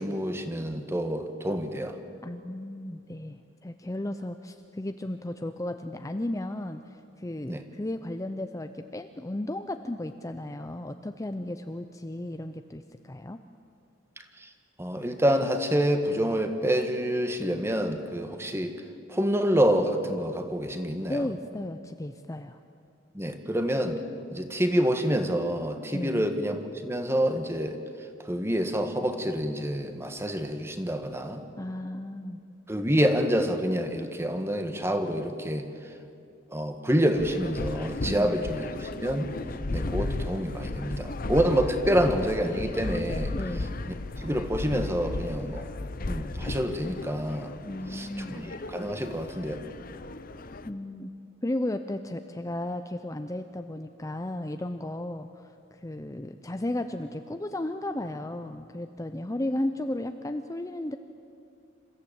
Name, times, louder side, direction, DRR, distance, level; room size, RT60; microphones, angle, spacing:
voice 1, 0.0-2.0 7.5-7.6 14.4-14.5 14.8-18.8 19.1-21.3 23.1-24.0 24.3-27.8 28.3-31.4 32.7-35.7 36.5-39.3 39.7-43.3 44.2-45.7 46.1-47.5 47.9-49.6, equal, 15° right, 7 dB, 1.4 m, -27 dB
voice 2, 2.2-13.4 21.1-22.6 25.9-26.3 31.6-32.4 38.0-38.4 43.3-43.7 47.7-48.5 50.6-51.1 51.4-61.0, left 1 dB, 15° left, 7 dB, 0.6 m, -34 dB
sound 1, 37.1-50.7, left 2 dB, 50° left, 0.8 m, -35 dB
27.0 x 14.5 x 8.7 m, 2.5 s
head